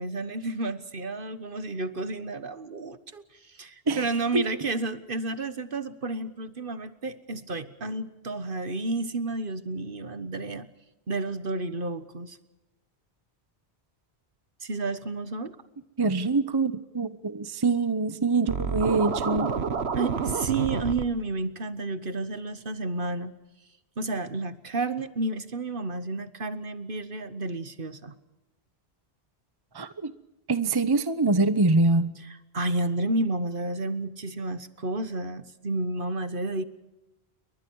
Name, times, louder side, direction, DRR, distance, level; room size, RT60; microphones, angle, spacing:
voice 1, 0.0-10.7 11.1-12.4 14.6-15.5 19.9-23.3 24.0-28.1 32.5-36.6, right 2 dB, 55° right, 12 dB, 1.5 m, -31 dB
voice 2, 16.0-19.6 29.7-30.1 30.5-32.1, right 3 dB, 25° right, 13 dB, 0.9 m, -24 dB
Scratching (performance technique), 18.5-21.0, right 5 dB, 80° right, 1.5 m, -29 dB
29.5 x 23.0 x 4.7 m, 0.99 s
omnidirectional pair, 1.1 m